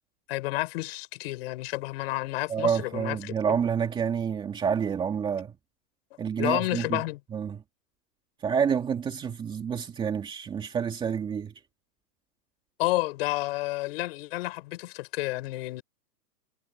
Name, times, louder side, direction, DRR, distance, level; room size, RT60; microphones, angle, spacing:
voice 1, 0.3-3.3 6.4-7.2 12.8-15.8, left 19 dB, 40° left, 5.6 m, -30 dB
voice 2, 2.5-5.5 6.2-7.0 7.3-7.6 8.4-11.5, right 7 dB, 10° right, 2.4 m, -28 dB
hypercardioid pair, 175°, 48 cm